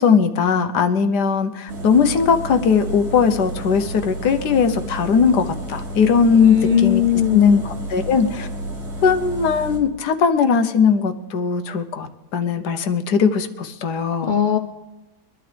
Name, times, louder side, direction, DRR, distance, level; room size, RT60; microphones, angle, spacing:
voice 1, 0.0-7.0 7.3-8.5 9.0-14.3, left 5 dB, 80° left, 8 dB, 1.5 m, -19 dB
sound 1, 1.7-9.8, right 1 dB, 70° right, 3.2 m, -31 dB
voice 2, 6.3-7.6 14.2-14.6, left 10 dB, 60° left, 5 dB, 0.5 m, -18 dB
23.5 x 12.0 x 3.4 m, 1.0 s
omnidirectional pair, 1.7 m